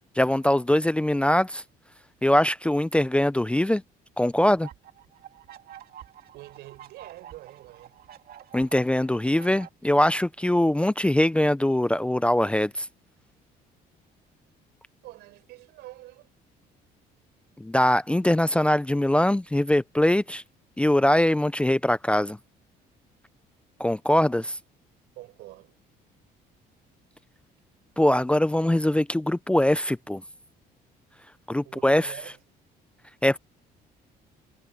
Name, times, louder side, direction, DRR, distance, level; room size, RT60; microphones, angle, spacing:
voice 1, 0.2-1.6 2.2-3.8 4.2-4.7 8.5-12.9 17.6-20.4 20.8-22.4 23.8-24.6 28.0-30.2 31.5-32.1 33.2-33.4, left 1 dB, 5° left, 0.5 m, -22 dB
sound 1, 4.5-9.7, right 11 dB, 60° right, 2.7 m, -48 dB
voice 2, 6.3-8.0 15.0-16.4 25.2-25.8 31.6-32.4, right 18 dB, 85° right, 5.7 m, -46 dB
cardioid pair, 110°, 17 cm